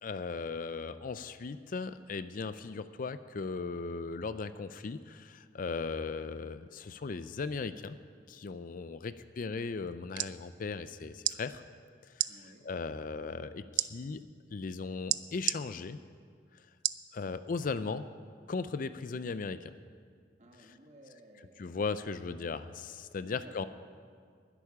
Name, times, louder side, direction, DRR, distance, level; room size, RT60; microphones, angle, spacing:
voice 1, 0.0-8.0 8.3-11.6 12.2-12.3 12.6-14.2 14.5-16.0 17.1-18.1 18.5-19.7 21.6-23.7, left 4 dB, 50° left, 13 dB, 0.4 m, -37 dB
sound 1, 9.9-10.3 11.2-11.4 12.1-12.3 13.8-13.9 15.1-15.6 16.8-17.1 17.6-17.7, right 15 dB, 70° right, 0.4 m, -30 dB
voice 2, 12.3-12.7 20.4-21.8 23.2-23.7, right 1 dB, 40° right, 2 dB, 1.7 m, -55 dB
11.0 x 8.4 x 10.0 m, 2.1 s
head